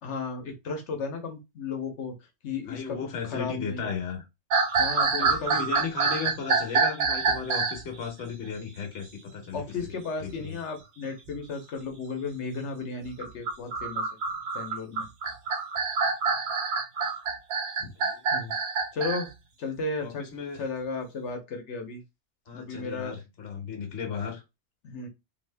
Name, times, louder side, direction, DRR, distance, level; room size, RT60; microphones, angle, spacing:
voice 1, 0.0-2.2 2.4-3.0 3.3-3.9 4.8-5.7 9.5-14.1 14.5-15.1 17.8-17.9 18.3-18.6 18.9-19.3 19.6-20.2 20.6-22.0 22.5-23.2 24.8-25.1, left 4 dB, 85° left, 1.2 m, -34 dB
voice 2, 2.7-4.3 5.2-9.6 10.2-10.6 18.0-18.2 20.0-20.6 22.5-24.4, left 6 dB, 65° left, 1.2 m, -35 dB
sound 1, 4.5-7.8 9.3-9.9 10.3-10.4 11.1-11.4 13.1-19.3, right 4 dB, 75° right, 1.0 m, -27 dB
2.9 x 2.6 x 3.3 m
omnidirectional pair, 1.2 m